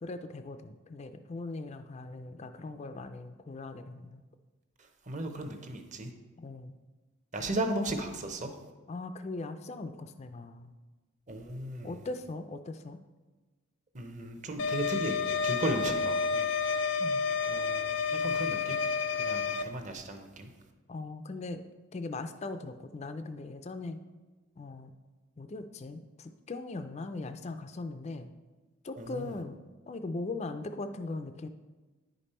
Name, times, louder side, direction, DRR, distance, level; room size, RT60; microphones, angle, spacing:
voice 1, 0.0-4.2 6.4-6.7 8.9-10.7 11.8-13.0 17.0-17.3 20.9-21.6 21.9-24.0 24.6-24.9 25.4-28.3 28.8-29.6 29.9-31.5, left 3 dB, 30° left, 8 dB, 0.3 m, -40 dB
voice 2, 4.8-6.1 7.3-8.6 11.3-12.1 13.9-16.5 17.5-18.8 19.2-20.5 29.0-29.4, right 1 dB, 35° right, 5 dB, 0.8 m, -36 dB
sound 1, 14.6-19.6, left 5 dB, 75° left, 0.7 m, -30 dB
10.0 x 5.2 x 4.3 m, 1.2 s
head